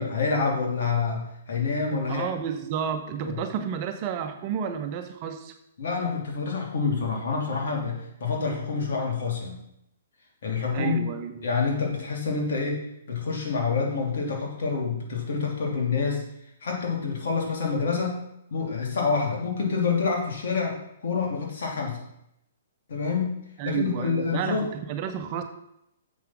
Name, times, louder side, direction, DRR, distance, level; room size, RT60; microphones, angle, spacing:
voice 1, 0.0-2.3 3.2-3.4 5.8-9.6 10.4-11.1 11.4-12.8 13.1-16.2 16.6-18.2 18.5-22.0 22.9-23.3 23.6-24.6, left 5 dB, 70° left, -1 dB, 2.9 m, -27 dB
voice 2, 2.1-5.5 10.7-11.4 23.6-25.4, right 8 dB, 40° right, 7 dB, 1.0 m, -31 dB
7.1 x 6.0 x 6.0 m, 0.79 s
hypercardioid pair, 140°, 0 cm